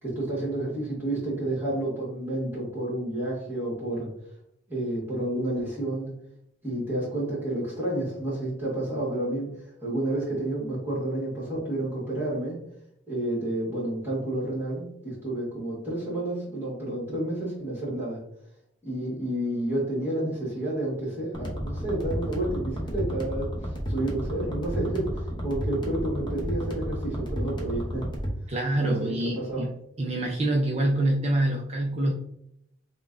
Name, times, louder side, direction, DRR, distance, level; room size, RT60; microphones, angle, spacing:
voice 1, 0.0-4.1 4.7-6.1 6.6-9.5 9.8-12.6 13.1-18.2 18.8-28.1 28.8-29.7, right 1 dB, 10° right, -8 dB, 1.4 m, -30 dB
sound 1, 21.3-28.4, equal, 25° left, 0.7 m, -32 dB
voice 2, 28.5-29.7 30.0-32.1, right 1 dB, 30° right, -1 dB, 0.4 m, -25 dB
5.3 x 2.2 x 2.5 m, 0.75 s
head